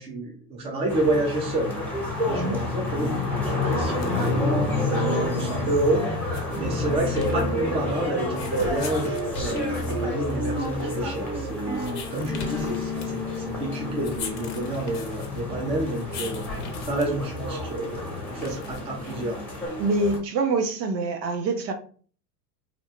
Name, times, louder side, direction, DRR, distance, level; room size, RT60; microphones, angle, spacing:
voice 1, 0.0-1.8 2.2-6.2 6.5-19.4, right 1 dB, 15° right, 0.4 m, -29 dB
sound 1, 0.9-20.2, left 2 dB, 5° left, 0.9 m, -30 dB
sound 2, 3.8-19.7, left 5 dB, 35° left, 0.6 m, -41 dB
sound 3, 8.5-15.0, left 1 dB, 30° right, 0.8 m, -33 dB
voice 2, 19.8-21.7, right 3 dB, 90° right, 0.8 m, -25 dB
2.7 x 2.1 x 2.9 m
supercardioid pair, 120°, 49 cm